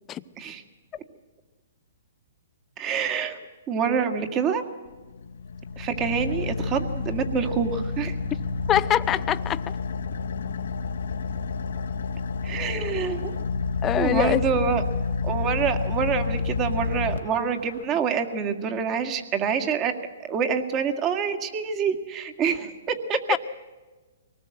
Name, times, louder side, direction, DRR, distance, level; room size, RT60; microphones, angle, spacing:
voice 1, 2.8-3.4 3.7-4.6 5.8-8.2 12.4-13.4 14.0-14.8 15.2-19.9 20.3-23.4, right 6 dB, 25° right, 7 dB, 1.9 m, -26 dB
Car / Idling, 4.9-17.8, left 4 dB, 75° left, 1.4 m, -30 dB
voice 2, 8.7-9.6 13.8-14.4 23.3-23.4, left 11 dB, 20° left, 14 dB, 0.7 m, -23 dB
24.0 x 19.0 x 7.8 m, 1.3 s
hypercardioid pair, 145°, 0 cm